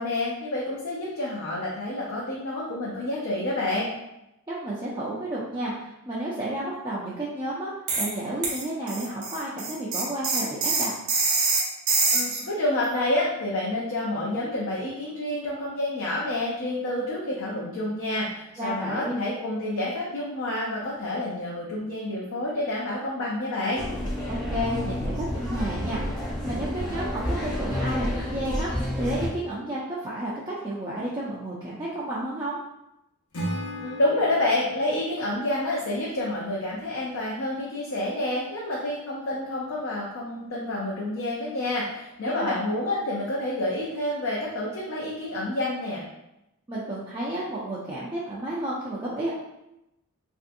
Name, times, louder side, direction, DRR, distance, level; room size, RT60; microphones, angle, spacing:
voice 1, 0.0-3.9 12.1-23.8 33.8-46.0, left 1 dB, 65° left, -5 dB, 0.5 m, -28 dB
voice 2, 4.5-10.9 18.6-19.2 24.2-28.7 29.0-32.6 42.2-42.6 46.7-49.3, right 1 dB, 20° right, -7 dB, 0.4 m, -31 dB
sound 1, 7.9-8.1 8.4-12.4, right 4 dB, 70° right, 0.6 m, -25 dB
sound 2, 23.7-29.3, left 1 dB, 20° left, 0.7 m, -29 dB
Acoustic guitar / Strum, 33.3-36.5, equal, 85° left, 0.8 m, -37 dB
3.2 x 2.6 x 2.6 m, 0.89 s
head